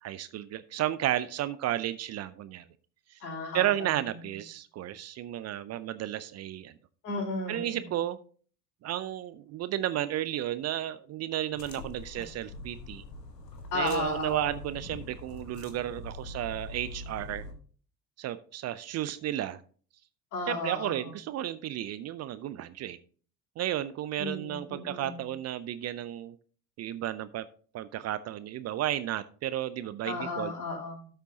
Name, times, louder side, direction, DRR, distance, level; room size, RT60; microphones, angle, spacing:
voice 1, 0.0-2.6 3.1-3.2 3.5-6.7 7.5-8.2 8.8-13.0 13.7-17.5 18.2-19.6 20.5-23.0 23.6-26.3 26.8-27.5 27.7-30.5, right 12 dB, 35° right, 15 dB, 0.5 m, -33 dB
voice 2, 3.2-4.0 7.0-7.9 12.2-12.3 13.7-14.5 20.3-21.1 24.2-25.2 30.0-31.1, left 3 dB, 70° left, -3 dB, 5.3 m, -34 dB
sound 1, 11.5-17.5, left 2 dB, 90° left, 1.2 m, -43 dB
12.5 x 6.7 x 2.8 m, 0.41 s
figure-of-eight pair, 65°, 48 cm